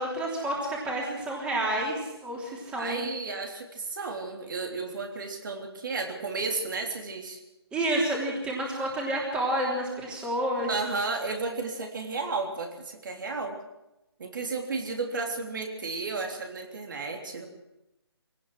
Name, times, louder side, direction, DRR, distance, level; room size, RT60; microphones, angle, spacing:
voice 1, 0.0-3.1 7.7-10.7, right 1 dB, 5° right, -2 dB, 3.3 m, -29 dB
voice 2, 2.8-7.4 10.7-13.6 14.2-17.5, right 3 dB, 50° right, 3 dB, 3.4 m, -33 dB
23.5 x 18.0 x 6.3 m, 0.93 s
hypercardioid pair, 160°, 14 cm